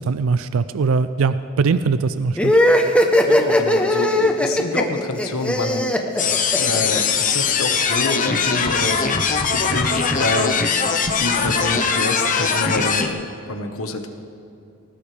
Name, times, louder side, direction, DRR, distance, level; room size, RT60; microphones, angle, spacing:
voice 1, 0.0-2.5, right 4 dB, 70° right, 12 dB, 0.4 m, -21 dB
sound 1, 2.4-7.0, left 1 dB, 5° left, 1.0 m, -18 dB
voice 2, 3.2-5.8 6.6-9.0 9.5-10.6 10.9-14.1, left 2 dB, 80° left, 5 dB, 1.4 m, -27 dB
sound 2, 6.2-13.1, left 5 dB, 40° left, 0.9 m, -21 dB
20.5 x 18.5 x 3.4 m, 2.6 s
head